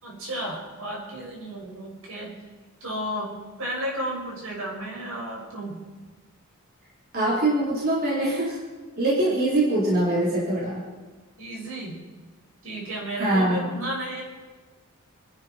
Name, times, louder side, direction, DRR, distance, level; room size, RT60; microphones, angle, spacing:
voice 1, 0.0-2.4 2.8-5.9 11.4-12.0 12.6-14.2, right 1 dB, 70° right, -2 dB, 5.6 m, -33 dB
voice 2, 7.1-8.6 9.0-10.9 13.2-13.7, right 1 dB, 45° right, -6 dB, 3.9 m, -23 dB
28.0 x 11.0 x 4.4 m, 1.3 s
head